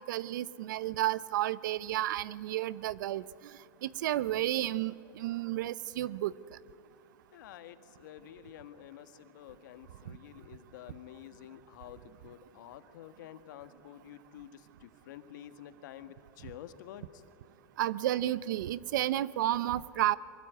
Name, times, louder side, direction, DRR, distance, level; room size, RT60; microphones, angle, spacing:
voice 1, 0.1-3.2 3.8-6.3 17.8-20.2, right 14 dB, 75° right, 19 dB, 0.7 m, -31 dB
voice 2, 7.3-17.2, left 11 dB, 75° left, 10 dB, 1.6 m, -50 dB
23.5 x 22.5 x 9.4 m, 2.5 s
supercardioid pair, 130°, 10 cm